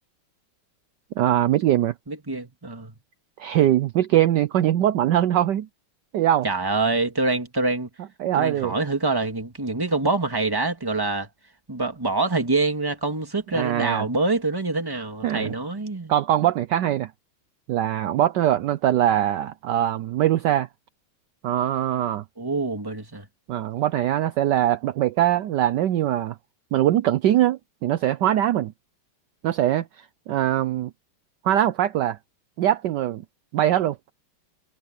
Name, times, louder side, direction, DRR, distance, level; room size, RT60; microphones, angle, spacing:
voice 1, 1.2-1.9 3.4-5.7 6.1-6.5 8.2-8.7 13.5-14.1 15.2-15.5 16.1-17.1 17.7-20.7 21.4-22.2 23.5-26.4 26.7-28.7 29.4-30.9 31.4-32.2 32.6-33.2 33.5-34.0, right 12 dB, 70° right, 1.1 m, -22 dB
voice 2, 2.1-2.9 6.4-7.9 8.3-11.3 11.7-16.1 22.4-23.3, right 3 dB, 10° right, 1.8 m, -25 dB
omnidirectional pair, 2.3 m